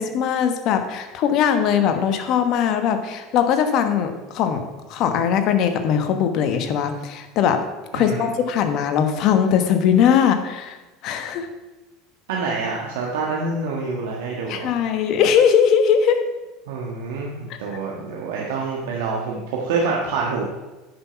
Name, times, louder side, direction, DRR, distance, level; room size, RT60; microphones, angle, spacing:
voice 1, 0.0-4.6 4.9-7.6 7.9-10.8 11.0-11.5 14.5-16.2, left 8 dB, 55° left, 7 dB, 1.2 m, -20 dB
voice 2, 7.9-8.2 12.3-14.7 16.7-20.4, right 4 dB, 75° right, -2 dB, 1.4 m, -26 dB
9.3 x 6.1 x 5.8 m, 1.1 s
hypercardioid pair, 85°, 0 cm